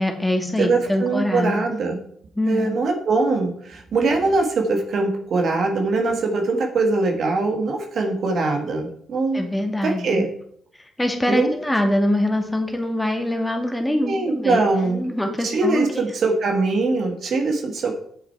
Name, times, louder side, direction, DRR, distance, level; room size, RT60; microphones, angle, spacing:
voice 1, 0.0-1.6 2.4-2.8 9.3-10.2 10.8-16.0, left 1 dB, 10° left, 3 dB, 2.1 m, -24 dB
voice 2, 0.6-2.0 2.5-9.4 9.8-10.3 11.3-11.5 14.0-15.0 15.4-18.0, right 3 dB, 60° right, 3 dB, 1.6 m, -22 dB
7.9 x 6.7 x 4.5 m, 0.67 s
hypercardioid pair, 50°, 0 cm